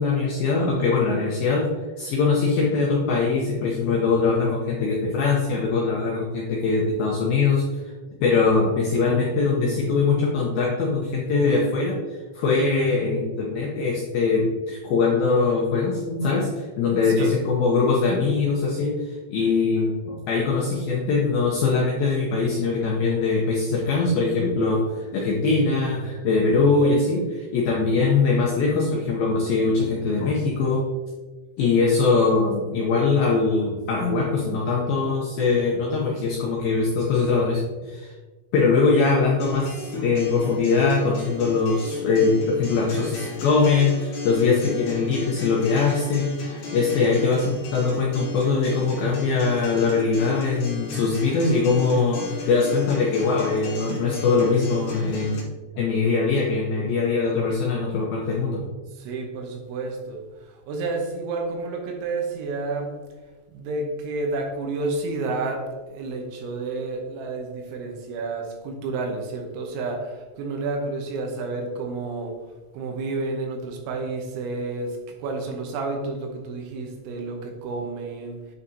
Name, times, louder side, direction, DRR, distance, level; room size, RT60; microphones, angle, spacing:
voice 1, 0.0-1.7 2.0-7.8 8.2-30.8 31.6-38.1 38.5-55.5 55.8-58.6, left 4 dB, 80° left, -3 dB, 2.1 m, -22 dB
voice 2, 17.1-17.4 50.4-50.5 58.9-63.0 63.5-72.4 72.7-78.6, right 3 dB, 85° right, 2 dB, 3.2 m, -30 dB
Acoustic guitar, 39.4-55.4, left 3 dB, 65° left, 3.8 m, -36 dB
8.5 x 5.4 x 2.8 m, 1.3 s
omnidirectional pair, 5.4 m